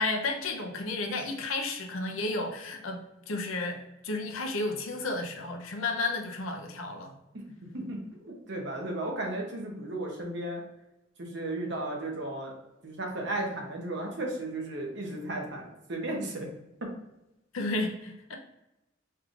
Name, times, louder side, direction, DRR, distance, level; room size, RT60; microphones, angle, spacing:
voice 1, 0.0-7.1 17.5-18.4, left 2 dB, 85° left, 3 dB, 0.7 m, -32 dB
voice 2, 7.7-10.6 11.2-12.5 12.8-16.5 16.8-16.9, right 1 dB, 60° right, 0 dB, 0.8 m, -34 dB
4.6 x 3.2 x 2.5 m, 0.93 s
head